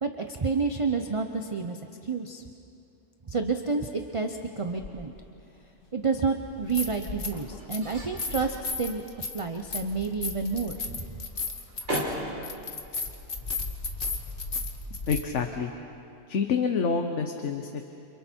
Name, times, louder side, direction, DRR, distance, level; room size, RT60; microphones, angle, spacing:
voice 1, 0.0-1.8 2.0-2.4 3.3-5.1 5.9-9.0 9.3-11.0, right 4 dB, 30° right, 5 dB, 0.8 m, -29 dB
sound 1, 4.8-4.9 6.5-7.4 7.7-15.2, left 3 dB, 45° left, 1.5 m, -34 dB
sound 2, 5.0-15.3, right 1 dB, 65° right, 4.6 m, -41 dB
voice 2, 15.1-15.7 16.3-17.8, left 5 dB, 70° left, 5 dB, 1.3 m, -27 dB
29.5 x 27.0 x 4.5 m, 2.7 s
omnidirectional pair, 1.3 m